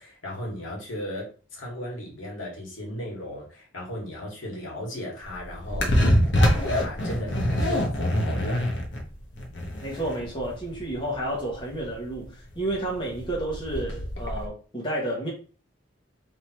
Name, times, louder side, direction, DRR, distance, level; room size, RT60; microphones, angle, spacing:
voice 1, 0.0-6.1 6.6-7.3 7.6-8.6, left 1 dB, 75° left, 2.0 m, -36 dB
sound 1, 5.2-14.5, equal, 60° left, 1.1 m, -25 dB
voice 2, 9.8-15.3, right 1 dB, 25° left, 1.2 m, -31 dB
3.6 x 2.9 x 4.4 m
head